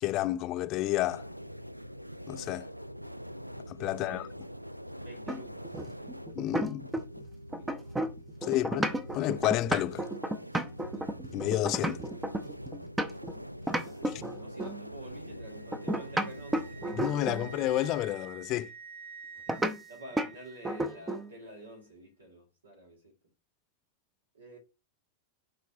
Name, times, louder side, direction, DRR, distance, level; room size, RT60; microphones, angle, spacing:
voice 1, 0.0-1.3 2.3-2.7 3.7-4.2 6.3-6.9 8.4-10.0 11.3-12.0 14.1-14.2 17.0-18.7, left 14 dB, 40° left, 0.4 m, -30 dB
sound 1, 1.0-18.0, equal, 90° right, 0.3 m, -44 dB
voice 2, 3.7-4.3 5.0-6.2 7.5-7.9 8.4-8.7 10.9-11.1 13.8-17.3 19.4-23.1 24.3-24.6, right 1 dB, 70° right, 2.4 m, -50 dB
sound 2, 5.3-7.2 7.5-13.3 13.7-14.8 15.7-17.5 19.5-19.8 20.2-20.3 20.6-21.3, right 1 dB, 10° right, 0.8 m, -32 dB
Wind instrument woodwind instrument, 15.4-21.3, right 6 dB, 35° right, 2.5 m, -50 dB
10.5 x 4.0 x 2.8 m
figure-of-eight pair, 90°, 0 cm